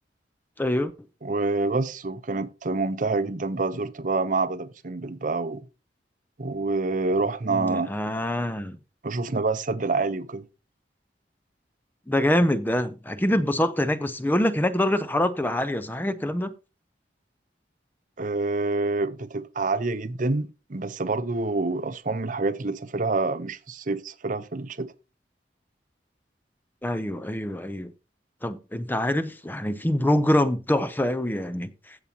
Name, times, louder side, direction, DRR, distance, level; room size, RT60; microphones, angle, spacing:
voice 1, 0.6-0.9 7.5-8.8 12.1-16.5 26.8-27.9 28.4-31.7, left 1 dB, 10° left, 0.6 m, -25 dB
voice 2, 1.2-5.7 6.4-7.9 9.0-10.5 18.2-24.9, right 3 dB, 50° right, 0.7 m, -27 dB
15.5 x 7.0 x 2.8 m
head